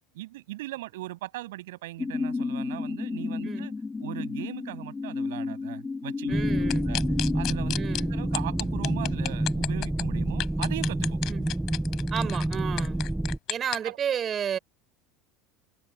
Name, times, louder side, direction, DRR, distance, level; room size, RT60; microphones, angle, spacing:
voice 1, 0.1-3.7 4.0-6.5 6.8-7.0 7.3-7.8 8.1-11.2 13.8-14.0, right 17 dB, 70° right, 7.8 m, -39 dB
sound 1, 2.0-9.6, left 4 dB, 20° left, 2.1 m, -32 dB
sound 2, 6.3-13.4, right 1 dB, 5° right, 0.5 m, -28 dB
voice 2, 6.3-6.9 7.7-8.2 11.3-11.5 12.1-13.0 13.5-14.6, right 8 dB, 35° right, 6.8 m, -32 dB
sound 3, 6.7-8.0 8.3-10.0 10.4-13.8, left 16 dB, 50° left, 6.7 m, -32 dB
figure-of-eight pair, 75°, 0 cm